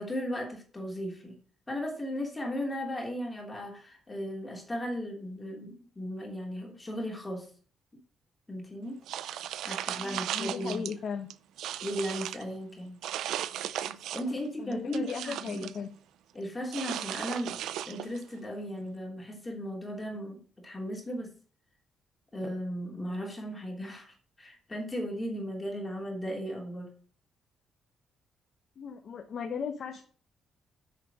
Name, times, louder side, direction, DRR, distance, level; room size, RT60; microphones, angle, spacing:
voice 1, 0.0-1.4 1.7-7.5 8.5-9.0 9.6-10.8 11.8-13.0 13.8-15.7 16.3-21.3 22.3-26.9, equal, 20° left, 0 dB, 3.0 m, -36 dB
sound 1, 9.1-10.9 11.3-12.4 13.0-14.4 14.7-15.8 16.7-18.2, right 11 dB, 80° right, 0.5 m, -36 dB
voice 2, 10.0-11.3 14.3-15.9 28.8-30.0, left 6 dB, 55° left, 4 dB, 1.2 m, -37 dB
7.7 x 6.6 x 6.0 m, 0.41 s
cardioid pair, 90°, 0 cm